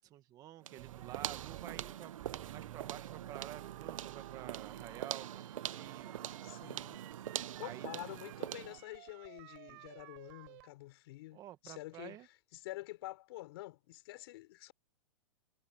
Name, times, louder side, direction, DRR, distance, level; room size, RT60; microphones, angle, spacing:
voice 1, 0.0-2.1 2.5-6.8 7.3-7.9 9.7-9.8 11.3-12.3, right 13 dB, 20° right, 1.5 m, -51 dB
sound 1, 0.6-8.8, right 11 dB, 85° right, 0.9 m, -43 dB
sound 2, 0.8-10.7, right 26 dB, 40° right, 5.7 m, -54 dB
voice 2, 6.4-7.0 7.6-12.2 12.5-14.7, left 18 dB, 50° left, 5.6 m, -48 dB
supercardioid pair, 160°, 17 cm